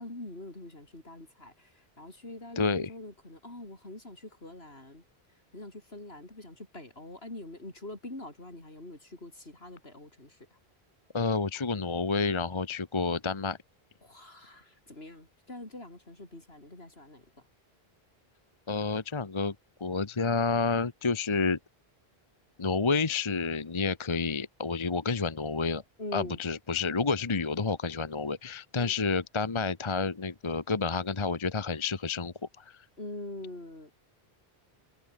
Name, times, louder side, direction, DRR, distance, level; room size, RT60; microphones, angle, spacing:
voice 1, 0.0-5.0 5.5-10.6 14.0-17.3 26.0-26.4 28.8-28.9 33.0-33.9, left 2 dB, 70° left, 5.7 m, -44 dB
voice 2, 2.6-2.9 11.1-13.6 18.7-19.5 19.8-21.6 22.6-25.8 26.1-32.8, left 4 dB, 30° left, 1.0 m, -29 dB
omnidirectional pair, 1.1 m